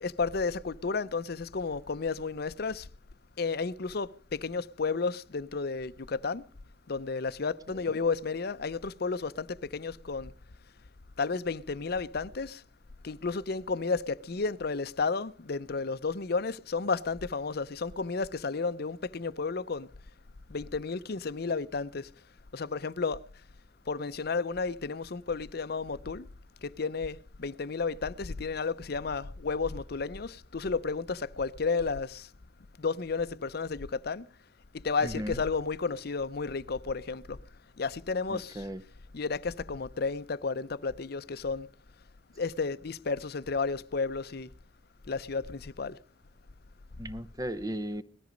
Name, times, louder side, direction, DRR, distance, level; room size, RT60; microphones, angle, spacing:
voice 1, 0.0-2.9 3.4-6.4 6.9-10.3 11.2-12.6 13.0-19.9 20.5-22.1 22.5-23.2 23.9-26.3 26.6-32.3 32.8-34.2 34.8-37.4 37.8-38.6 39.1-41.7 42.4-44.5 45.1-46.0, left 4 dB, 60° left, 0.6 m, -32 dB
voice 2, 35.0-35.4 38.3-38.8 47.0-48.0, right 1 dB, 20° right, 0.7 m, -36 dB
19.5 x 13.5 x 5.2 m
head